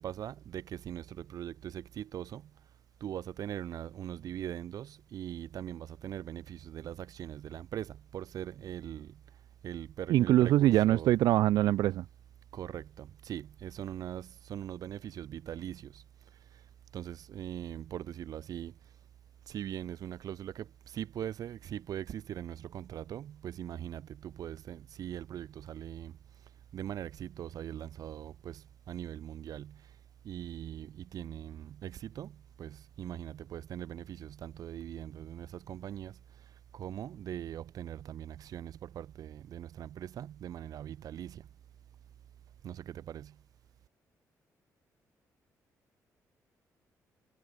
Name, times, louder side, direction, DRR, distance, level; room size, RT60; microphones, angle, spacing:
voice 1, 0.0-2.7 3.0-11.1 12.5-19.0 19.5-30.0 30.2-41.5 42.6-43.4, right 10 dB, 65° right, 5.6 m, -41 dB
voice 2, 10.1-12.1, right 14 dB, 90° right, 0.7 m, -24 dB
cardioid pair, 120°, 7 cm